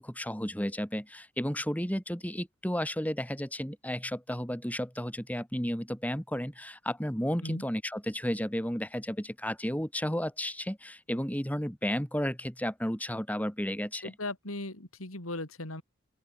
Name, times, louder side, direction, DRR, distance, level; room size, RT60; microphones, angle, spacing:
voice 1, 0.0-14.1, equal, 5° left, 6.4 m, -33 dB
voice 2, 14.0-15.8, left 2 dB, 85° left, 5.3 m, -38 dB
open air
head